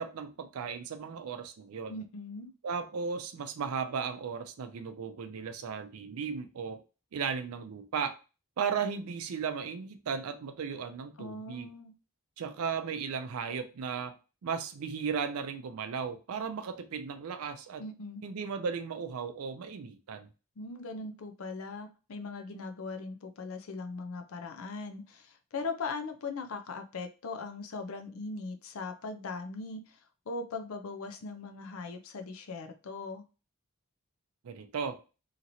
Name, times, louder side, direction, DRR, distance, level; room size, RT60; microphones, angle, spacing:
voice 1, 0.0-2.0 2.6-6.8 7.1-8.2 8.6-11.7 12.4-14.1 14.4-17.8 18.2-20.3 34.4-35.0, right 6 dB, 80° right, 8 dB, 0.4 m, -36 dB
voice 2, 1.9-2.5 11.2-11.9 17.8-18.2 20.6-30.0 30.3-33.2, left 3 dB, 70° left, 7 dB, 0.5 m, -39 dB
2.9 x 2.8 x 2.6 m, 0.32 s
head